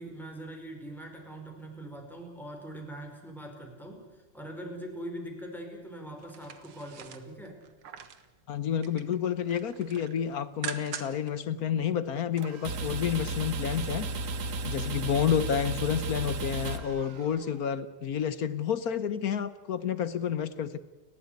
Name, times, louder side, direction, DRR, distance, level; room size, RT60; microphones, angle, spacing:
voice 1, 0.0-7.6, right 1 dB, ahead, 1 dB, 5.1 m, -42 dB
sound 1, 6.2-8.3 8.6-9.2 9.5-11.3 11.7-11.8, right 8 dB, 80° right, 2.3 m, -42 dB
voice 2, 8.5-14.1 14.6-20.8, left 8 dB, 55° left, 14 dB, 1.1 m, -30 dB
sound 2, 12.4-17.6, right 2 dB, 45° right, 1.2 m, -34 dB
30.0 x 13.5 x 9.6 m, 1.2 s
omnidirectional pair, 2.4 m